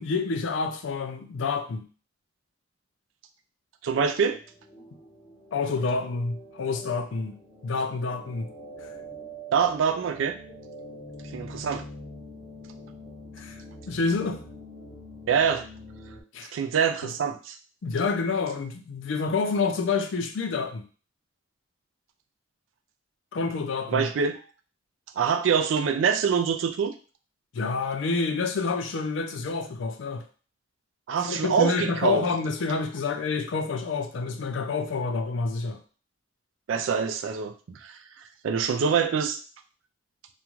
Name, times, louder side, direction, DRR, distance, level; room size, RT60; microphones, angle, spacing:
voice 1, 0.0-1.9 5.5-7.4 7.6-8.5 13.4-13.6 13.9-14.4 16.3-16.5 17.0-17.1 17.8-20.8 23.3-24.1 27.5-30.2 31.2-35.8, left 4 dB, 70° left, 7 dB, 0.4 m, -28 dB
voice 2, 3.8-4.4 9.5-10.4 11.3-11.9 15.3-15.6 16.5-17.6 23.9-24.4 25.2-26.9 31.1-32.3 36.7-37.9 38.4-39.4, right 6 dB, 75° right, 8 dB, 0.3 m, -25 dB
sound 1, 4.3-16.2, equal, 20° left, 0.5 m, -44 dB
2.5 x 2.2 x 3.0 m, 0.38 s
head